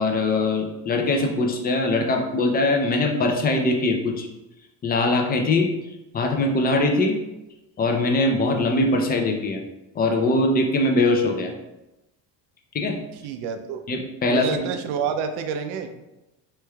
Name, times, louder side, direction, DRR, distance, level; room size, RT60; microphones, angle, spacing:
voice 1, 0.0-4.3 4.8-5.7 6.1-7.2 7.8-9.6 10.0-11.5 12.7-13.0 13.9-14.6, left 2 dB, 25° left, 3 dB, 0.4 m, -22 dB
voice 2, 13.2-13.8 14.2-15.9, right 7 dB, 65° right, 7 dB, 0.5 m, -28 dB
3.2 x 3.1 x 2.2 m, 0.97 s
supercardioid pair, 105°, 44 cm